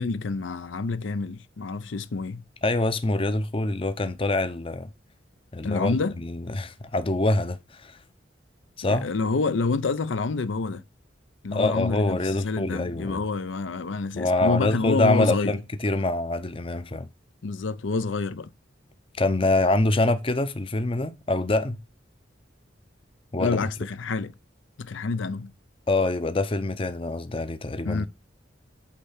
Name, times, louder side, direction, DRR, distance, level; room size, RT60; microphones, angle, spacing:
voice 1, 0.0-2.4 5.6-6.1 8.9-10.8 11.4-15.5 17.4-18.5 23.4-24.3 24.8-25.5 27.8-28.1, left 4 dB, 75° left, 0.6 m, -28 dB
voice 2, 2.6-4.9 5.5-8.0 8.8-9.1 11.5-13.2 14.2-17.1 19.2-21.8 23.3-23.6 25.9-28.1, left 2 dB, 30° left, 0.6 m, -25 dB
8.5 x 3.3 x 5.6 m
head